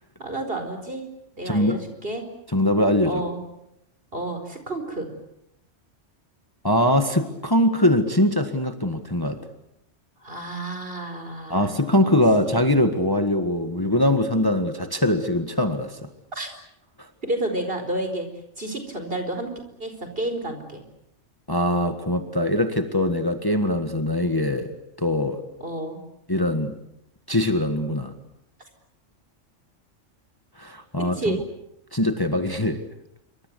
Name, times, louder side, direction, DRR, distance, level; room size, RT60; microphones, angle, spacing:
voice 1, 0.2-1.1 1.3-2.3 3.1-3.4 4.1-5.1 10.2-12.1 12.4-12.6 16.3-16.5 17.2-18.3 18.6-19.5 19.8-20.8 25.6-26.0 31.0-31.4, right 1 dB, 50° right, 7 dB, 4.9 m, -30 dB
voice 2, 1.4-1.8 2.5-3.2 6.6-9.4 11.5-16.1 17.0-17.1 21.5-24.7 25.0-25.4 26.3-26.7 27.3-28.1 30.6-31.4 31.9-32.8, left 1 dB, 20° left, 7 dB, 1.7 m, -22 dB
27.5 x 24.5 x 8.2 m, 0.82 s
omnidirectional pair, 1.3 m